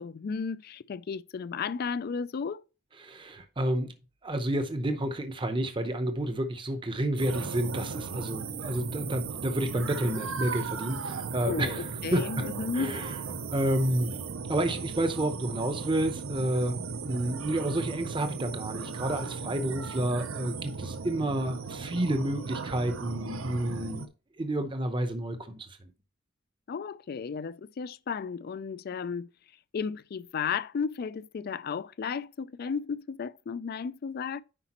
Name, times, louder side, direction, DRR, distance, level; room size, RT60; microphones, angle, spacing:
voice 1, 0.0-2.6 11.4-13.1 19.1-19.5 26.7-29.3 29.7-34.4, left 6 dB, 50° left, 0.3 m, -34 dB
voice 2, 3.0-3.9 4.2-12.4 12.7-13.1 13.5-14.2 14.5-24.1 24.4-25.9, right 1 dB, 25° right, 0.7 m, -30 dB
sound 1, 7.2-24.1, right 5 dB, 75° right, 0.7 m, -37 dB
9.8 x 5.0 x 2.9 m
head